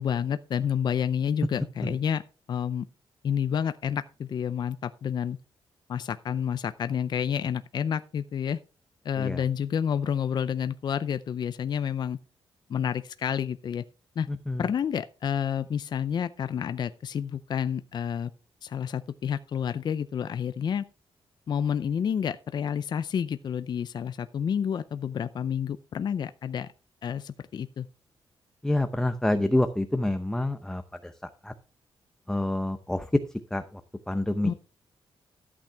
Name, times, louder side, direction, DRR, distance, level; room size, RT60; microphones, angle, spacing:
voice 1, 0.0-2.2 2.5-2.8 3.2-5.4 5.9-8.6 9.0-12.2 12.7-13.8 14.2-14.3 14.6-18.3 18.6-20.9 21.5-26.7 27.0-27.9 34.4-34.5, left 8 dB, 50° left, 0.5 m, -29 dB
voice 2, 14.3-14.6 28.6-31.5 32.3-33.1 33.5-33.8 34.1-34.5, left 1 dB, 5° left, 0.7 m, -28 dB
13.0 x 8.6 x 3.4 m
wide cardioid pair, 135°, 9 cm